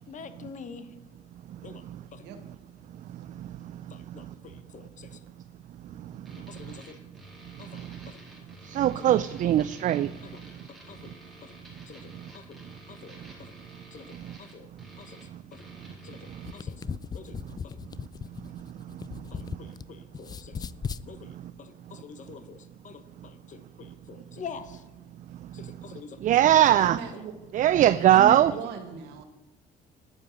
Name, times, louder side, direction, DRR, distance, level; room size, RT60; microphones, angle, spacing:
voice 1, 0.1-0.9 1.6-2.3 3.9-5.2 6.3-7.0 7.6-8.2 9.0-9.1 9.6-9.7 10.2-10.4 10.7-11.6 11.9-13.6 13.9-14.7 15.0-15.2 15.5-15.7 16.0-16.8 17.1-17.8 19.3-20.7 21.1-24.8 25.5-26.5, left 6 dB, 50° left, 1.2 m, -47 dB
voice 2, 2.1-3.6 4.1-4.2 5.5-6.2 26.7-27.4 28.0-29.2, right 6 dB, 85° right, 1.7 m, -40 dB
sound 1, 6.2-16.6, equal, ahead, 4.1 m, -51 dB
voice 3, 8.7-10.1 26.2-27.0 27.5-28.5, right 12 dB, 50° right, 0.4 m, -20 dB
sound 2, 16.3-19.8 20.1-21.1, left 6 dB, 25° left, 0.4 m, -37 dB
9.7 x 9.4 x 7.0 m
cardioid pair, 110°, 17 cm